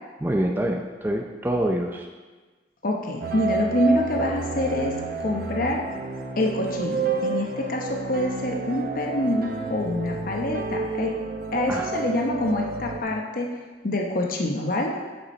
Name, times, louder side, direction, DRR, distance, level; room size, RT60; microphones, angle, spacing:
voice 1, 0.2-2.1 11.7-11.9, right 1 dB, 10° right, 1 dB, 0.5 m, -26 dB
voice 2, 2.8-4.9 5.2-5.8 6.4-11.1 11.5-13.5 13.8-15.0, left 1 dB, 50° left, 1 dB, 0.9 m, -26 dB
sound 1, 3.2-13.0, right 3 dB, 55° right, 0.7 m, -30 dB
8.4 x 6.7 x 4.2 m, 1.3 s
head